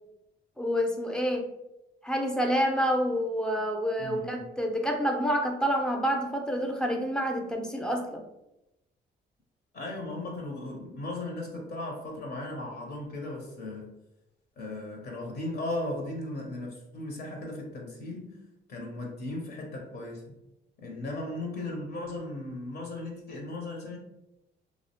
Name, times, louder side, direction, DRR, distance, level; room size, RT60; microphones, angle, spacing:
voice 1, 0.6-1.4 2.0-8.2, equal, 5° left, 2 dB, 0.4 m, -28 dB
voice 2, 4.0-4.4 9.7-13.9 14.6-18.4 18.7-20.4 20.8-24.0, left 2 dB, 55° left, 1 dB, 0.6 m, -37 dB
2.4 x 2.0 x 2.8 m, 0.90 s
cardioid pair, 90°, 20 cm